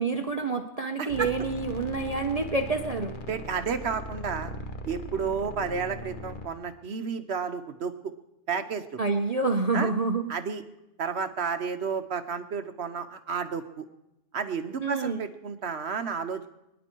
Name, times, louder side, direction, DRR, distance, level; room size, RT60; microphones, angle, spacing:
voice 1, 0.0-3.1 9.0-10.3 14.8-15.2, right 3 dB, 35° right, 5 dB, 0.7 m, -28 dB
voice 2, 1.0-1.3 3.3-4.5 4.8-7.9 8.5-8.9 9.7-9.9 10.3-10.6 11.0-13.8 14.3-16.5, right 6 dB, 55° right, 9 dB, 1.1 m, -31 dB
sound 1, 1.1-6.5, left 1 dB, 40° left, 1.1 m, -39 dB
24.5 x 10.5 x 4.5 m, 0.89 s
omnidirectional pair, 1.4 m